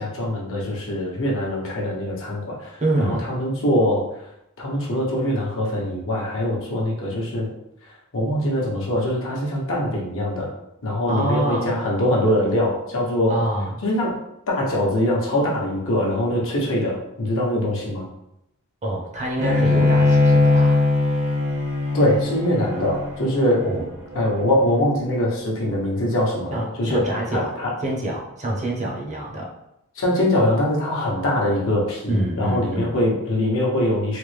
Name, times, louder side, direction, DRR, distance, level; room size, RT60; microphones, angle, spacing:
voice 1, 0.0-4.0 4.6-7.5 8.1-10.5 10.8-13.3 13.8-14.1 14.5-18.1 21.9-23.6 24.1-27.7 29.9-34.2, left 1 dB, 65° left, -3 dB, 0.9 m, -23 dB
voice 2, 2.8-3.3 11.1-11.8 13.3-13.8 18.8-20.8 23.6-23.9 26.5-27.5 27.8-29.5 32.1-33.0, right 1 dB, 30° right, -2 dB, 0.7 m, -26 dB
Bowed string instrument, 19.4-24.7, left 3 dB, 70° right, 1.1 m, -20 dB
3.4 x 2.1 x 3.2 m, 0.84 s
head